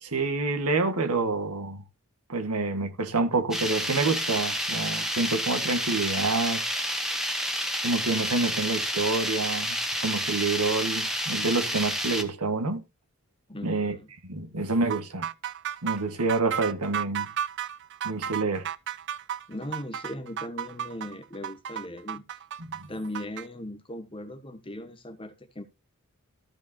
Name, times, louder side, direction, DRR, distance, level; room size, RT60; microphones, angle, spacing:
voice 1, 0.0-1.8 2.3-6.6 7.8-12.8 13.6-14.0 14.2-15.3 15.8-17.3 18.0-18.6 22.8-22.9, right 3 dB, 85° right, 1.6 m, -27 dB
sound 1, 3.5-12.2, equal, ahead, 1.4 m, -29 dB
voice 2, 13.5-14.1 19.5-22.2 22.9-25.6, left 1 dB, 25° left, 1.3 m, -38 dB
sound 2, 14.9-23.5, right 9 dB, 55° right, 0.5 m, -33 dB
14.0 x 5.2 x 4.4 m
head